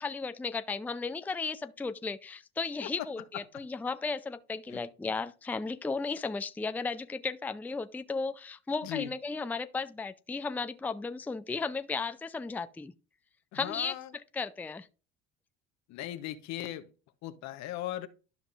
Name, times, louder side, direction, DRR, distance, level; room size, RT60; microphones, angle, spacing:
voice 1, 0.0-12.9 13.5-14.0 14.3-14.9, left 4 dB, 5° left, 0.4 m, -35 dB
voice 2, 13.5-14.1 15.9-16.8 17.2-18.1, left 13 dB, 70° left, 1.0 m, -38 dB
12.0 x 5.3 x 2.5 m
supercardioid pair, 90°, 29 cm